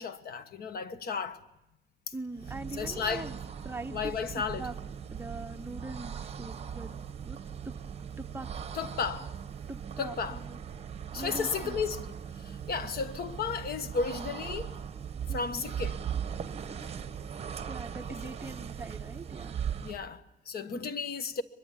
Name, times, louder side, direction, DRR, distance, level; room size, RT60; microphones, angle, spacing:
voice 1, 0.0-1.4 2.8-3.3 3.9-4.7 8.7-9.3 10.0-10.4 11.1-12.1 12.4-14.7 15.3-16.0 19.8-21.4, left 5 dB, 60° left, 1.3 m, -34 dB
voice 2, 2.1-3.4 3.6-4.8 5.1-6.9 7.2-7.4 7.6-8.5 9.7-10.6 11.1-11.8 15.3-15.7 17.7-19.6, right 2 dB, 15° right, 1.0 m, -42 dB
sound 1, 2.3-20.1, right 8 dB, 35° right, 1.2 m, -39 dB
23.0 x 22.0 x 8.6 m
cardioid pair, 125°, 18 cm